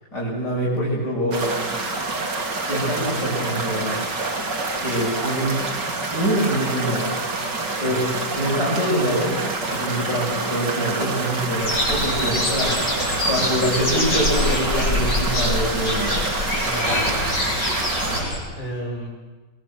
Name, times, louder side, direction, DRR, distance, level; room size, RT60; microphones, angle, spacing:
voice 1, 0.1-1.6 2.7-4.0 4.8-5.6 6.1-7.1 7.8-9.4 9.7-12.8 13.3-16.2, equal, 60° left, -7 dB, 7.5 m, -24 dB
sound 1, 1.3-18.2, right 3 dB, 65° right, 3.5 m, -27 dB
sound 2, 11.6-18.4, left 1 dB, 45° left, 8.7 m, -24 dB
voice 2, 16.6-18.3 18.5-19.1, right 1 dB, 25° left, -2 dB, 8.1 m, -35 dB
27.5 x 21.5 x 8.0 m, 1.3 s
omnidirectional pair, 2.0 m